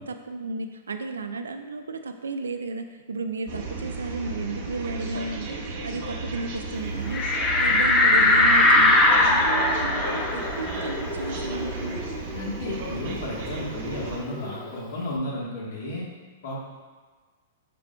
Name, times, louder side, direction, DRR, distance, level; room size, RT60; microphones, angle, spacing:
voice 1, 0.0-5.6 5.8-7.3 7.6-12.0, right 4 dB, 90° right, 7 dB, 0.3 m, -33 dB
sound 1, 3.5-14.2, right 3 dB, 55° right, 1.0 m, -34 dB
sound 2, 7.1-12.3 12.7-12.8 13.1-14.8, left 2 dB, 25° left, 0.5 m, -21 dB
voice 2, 12.3-16.1 16.4-16.6, left 1 dB, 70° left, -4 dB, 1.3 m, -33 dB
5.8 x 3.6 x 2.2 m, 1.4 s
hypercardioid pair, 120°, 0 cm